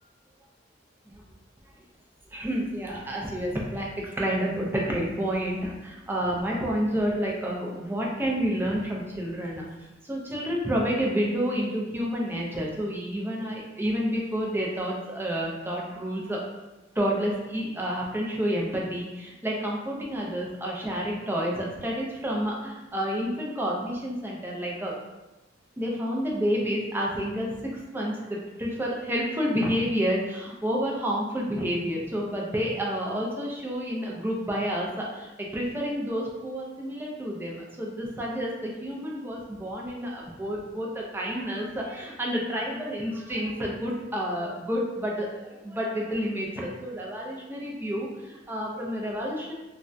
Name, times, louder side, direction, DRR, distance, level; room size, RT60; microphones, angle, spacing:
voice 1, 2.3-9.7 10.0-16.4 16.9-24.9 25.8-49.5, equal, 10° right, -3 dB, 0.4 m, -29 dB
3.3 x 2.2 x 2.6 m, 1.1 s
head